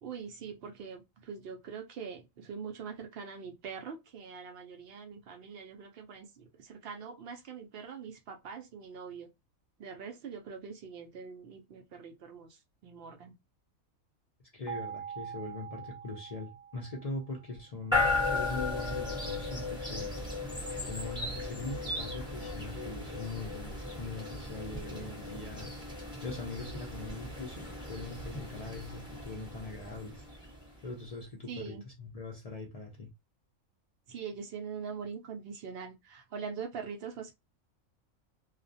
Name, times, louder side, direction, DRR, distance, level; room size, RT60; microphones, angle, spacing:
voice 1, 0.0-9.3 9.8-13.3 31.5-31.8 34.1-37.3, right 6 dB, 65° right, 0.6 m, -43 dB
voice 2, 14.5-20.2 20.8-25.7 26.2-30.3 30.8-33.1, left 3 dB, 60° left, 0.4 m, -41 dB
sound 1, 14.7-17.6, right 8 dB, 35° left, 0.8 m, -44 dB
sound 2, 17.9-30.9, left 3 dB, 5° right, 0.7 m, -36 dB
2.3 x 2.1 x 2.5 m
omnidirectional pair, 1.4 m